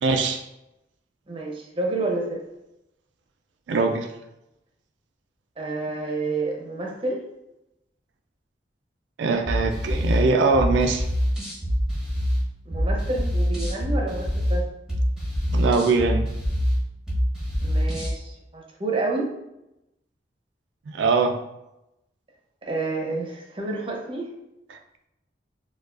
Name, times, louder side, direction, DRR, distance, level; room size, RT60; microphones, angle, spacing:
voice 1, 0.0-0.4 3.7-4.1 9.2-11.1 15.5-16.3 20.9-21.4, right 4 dB, 90° right, 5 dB, 0.4 m, -22 dB
voice 2, 1.3-2.4 5.6-7.2 12.7-14.6 17.6-19.3 22.6-24.3, right 2 dB, 30° right, -1 dB, 0.7 m, -29 dB
sound 1, 9.4-18.2, equal, 5° right, 1.0 m, -25 dB
4.6 x 2.3 x 2.4 m, 0.89 s
head